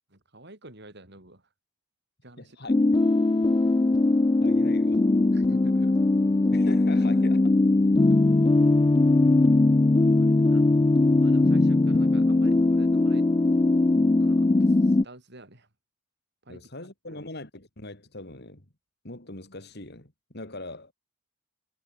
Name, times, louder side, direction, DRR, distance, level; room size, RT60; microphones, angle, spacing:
voice 1, 0.1-1.5 2.2-2.6 5.3-5.9 7.9-8.2 10.0-10.7 11.2-13.3 14.2-15.7 16.4-17.3, right 1 dB, 55° right, 6.1 m, -49 dB
voice 2, 2.4-2.8 3.6-3.8 4.4-5.0 6.5-7.5 16.5-18.7 19.0-20.9, left 2 dB, 55° left, 4.0 m, -41 dB
sound 1, 2.7-15.0, left 2 dB, 20° left, 0.4 m, -20 dB
head